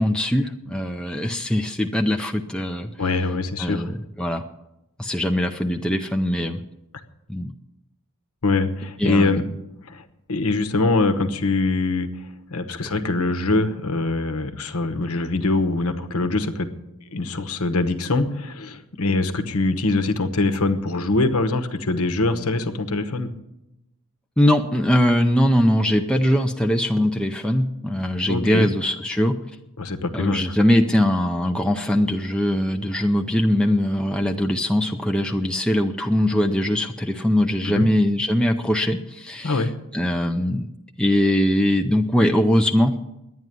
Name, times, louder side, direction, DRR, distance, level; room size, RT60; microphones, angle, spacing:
voice 1, 0.0-2.9 3.6-4.4 5.0-6.6 7.3-7.5 9.0-9.5 24.4-29.4 30.1-39.6 39.9-40.7 41.0-43.0, left 1 dB, 5° left, 3 dB, 0.5 m, -21 dB
voice 2, 3.0-3.9 8.4-9.5 9.8-16.7 17.0-23.3 28.3-28.7 29.8-30.5 37.6-37.9 39.4-39.7, left 3 dB, 70° left, 10 dB, 1.1 m, -23 dB
11.0 x 9.4 x 9.2 m, 0.92 s
head